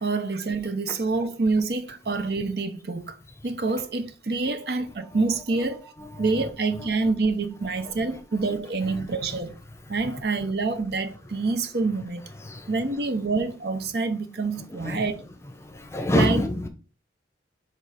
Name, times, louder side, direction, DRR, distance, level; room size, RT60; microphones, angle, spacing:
voice 1, 0.0-3.2 3.4-5.9 6.2-9.5 9.9-12.2 12.7-15.2 16.1-16.4, right 3 dB, 60° right, 0.6 m, -27 dB
voice 2, 6.0-6.5 6.8-6.9 7.9-8.2 8.5-8.6 8.8-9.1 10.0-10.1 12.4-12.7 14.8-15.0 15.6-16.7, left 1 dB, 15° left, 0.7 m, -28 dB
5.2 x 3.7 x 5.6 m
head